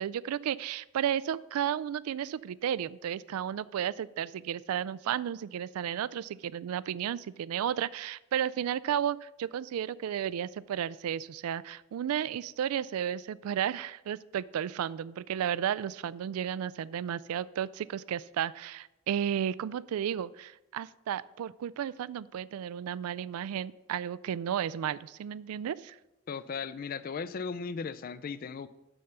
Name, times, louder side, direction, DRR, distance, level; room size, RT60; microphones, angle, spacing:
voice 1, 0.0-26.0, right 9 dB, 90° right, 20 dB, 0.3 m, -33 dB
voice 2, 26.3-28.7, left 5 dB, 40° left, 15 dB, 0.3 m, -36 dB
6.8 x 6.3 x 5.8 m, 0.94 s
head